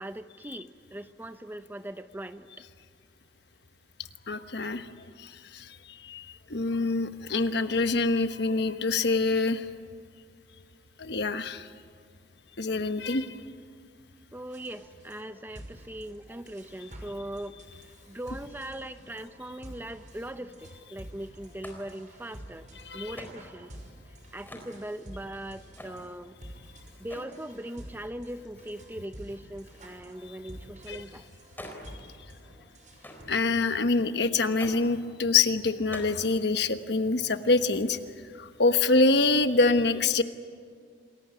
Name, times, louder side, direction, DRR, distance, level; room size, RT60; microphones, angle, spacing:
voice 1, 0.0-2.5 14.3-22.7 22.9-23.8 24.3-26.4 27.0-31.2, right 1 dB, 10° right, 10 dB, 0.7 m, -40 dB
voice 2, 4.3-4.9 5.2-9.7 11.0-11.7 12.6-13.4 22.9-23.1 30.9-31.0 33.3-38.0 38.4-40.2, left 3 dB, 65° left, 9 dB, 1.3 m, -25 dB
sound 1, 14.5-33.2, right 1 dB, 45° right, 5.9 m, -49 dB
sound 2, 21.5-23.4 24.0-24.1 24.3-24.7 25.4-26.0 26.8-27.4 31.5-32.0 32.3-32.4 32.7-32.8 33.0-35.0 35.6-36.3, left 1 dB, 10° left, 4.4 m, -46 dB
28.5 x 20.5 x 9.6 m, 2.1 s
head